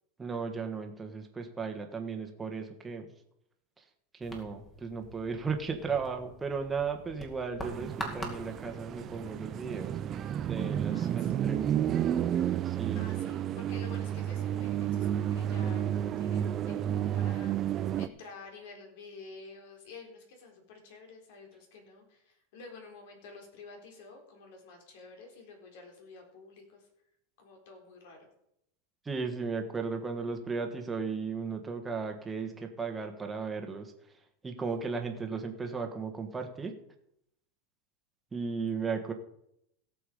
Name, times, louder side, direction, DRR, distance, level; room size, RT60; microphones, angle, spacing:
voice 1, 0.2-3.1 3.8-3.9 4.1-10.0 10.4-11.9 12.6-13.1 29.0-33.9 34.4-36.7 38.3-39.1, right 5 dB, 10° right, 4 dB, 1.5 m, -35 dB
sound 1, 4.2-10.8, equal, 15° left, 2.2 m, -45 dB
sound 2, 7.6-18.1, right 10 dB, 30° right, 0.5 m, -31 dB
voice 2, 10.9-11.3 12.9-26.9 27.4-28.3 34.8-35.0, left 4 dB, 65° left, 2 dB, 3.9 m, -50 dB
17.0 x 7.0 x 5.1 m, 0.77 s
supercardioid pair, 145°, 0 cm